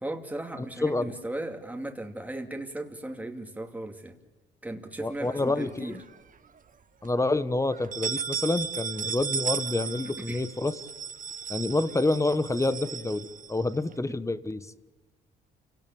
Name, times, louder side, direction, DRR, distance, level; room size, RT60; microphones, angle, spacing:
voice 1, 0.0-4.1 4.6-6.0 10.3-10.4 14.0-14.1, right 1 dB, 10° right, 3 dB, 2.6 m, -36 dB
voice 2, 0.6-1.1 5.0-6.0 7.0-10.8 11.5-14.6, left 2 dB, 15° left, 14 dB, 1.3 m, -28 dB
sound 1, 5.2-6.2 6.6-6.7 7.0-7.1 7.7-13.9, right 7 dB, 40° right, 1.2 m, -35 dB
28.5 x 17.5 x 8.8 m, 1.1 s
cardioid pair, 90°, 20 cm